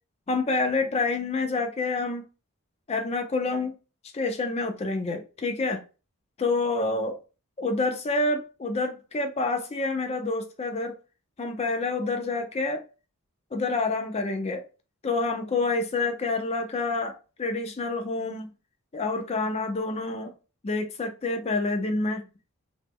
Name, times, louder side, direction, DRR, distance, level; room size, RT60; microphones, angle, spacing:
voice 1, 0.3-2.2 2.9-3.7 4.1-5.8 6.4-7.2 7.6-10.9 11.4-12.8 13.5-14.6 15.0-18.5 18.9-20.3 20.6-22.3, left 3 dB, 30° left, 0.4 m, -28 dB
3.0 x 2.0 x 3.4 m
head